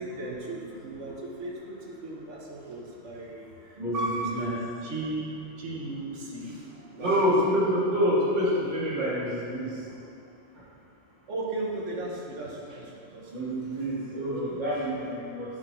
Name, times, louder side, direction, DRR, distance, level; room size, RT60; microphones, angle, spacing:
voice 1, 0.0-7.2 11.3-14.6, right 2 dB, 85° right, -3 dB, 1.5 m, -36 dB
voice 2, 3.8-4.5 7.0-9.8 10.6-10.7 13.3-15.6, equal, 40° right, -8 dB, 1.9 m, -27 dB
10.0 x 4.6 x 3.9 m, 2.6 s
omnidirectional pair, 1.2 m